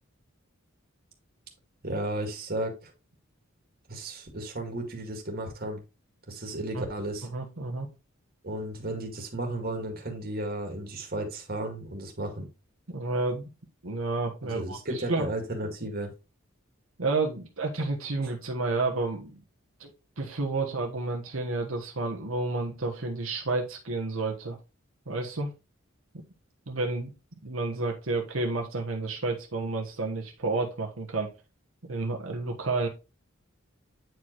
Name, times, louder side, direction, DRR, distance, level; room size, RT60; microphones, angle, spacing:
voice 1, 1.8-2.9 3.9-5.8 6.3-7.3 8.4-12.5 14.4-16.1, right 1 dB, 45° right, 2.0 m, -34 dB
voice 2, 7.3-7.9 12.9-13.5 13.8-15.3 17.0-19.4 19.8-19.9 20.2-24.6 25.1-25.5 26.7-27.1 27.4-31.3 31.8-32.9, right 3 dB, 85° right, 1.3 m, -30 dB
9.3 x 4.6 x 3.1 m
head